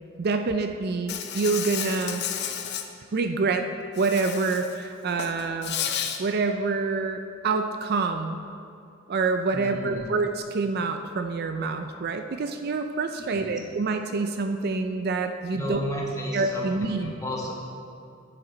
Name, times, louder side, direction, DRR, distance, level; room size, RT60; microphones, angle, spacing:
voice 1, 0.2-2.2 3.1-3.7 4.0-5.8 6.2-8.4 9.1-15.8 16.3-17.1, right 4 dB, 50° right, 7 dB, 0.4 m, -27 dB
Insect, 1.1-2.8 4.0-4.8 5.1-6.2, left 8 dB, 55° left, 0.6 m, -32 dB
voice 2, 9.5-10.1 13.2-13.6 15.5-17.5, equal, 15° left, -3 dB, 1.4 m, -33 dB
9.9 x 6.8 x 4.4 m, 2.4 s
head